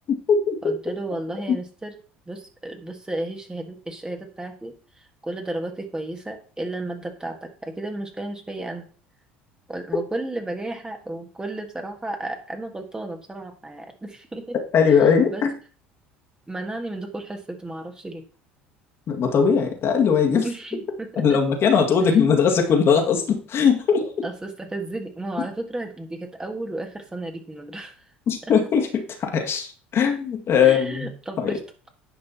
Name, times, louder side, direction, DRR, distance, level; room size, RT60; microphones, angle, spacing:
voice 1, 0.6-2.0 2.3-8.9 9.7-14.6 15.0-15.4 16.5-18.2 20.4-21.4 24.2-28.0 30.6-31.6, right 2 dB, 15° right, 4 dB, 1.9 m, -33 dB
voice 2, 14.7-15.5 19.1-20.5 21.2-24.1 28.3-31.1 31.4-31.6, left 6 dB, 45° left, 2 dB, 2.0 m, -20 dB
10.5 x 5.4 x 4.2 m, 0.39 s
hypercardioid pair, 65°, 6 cm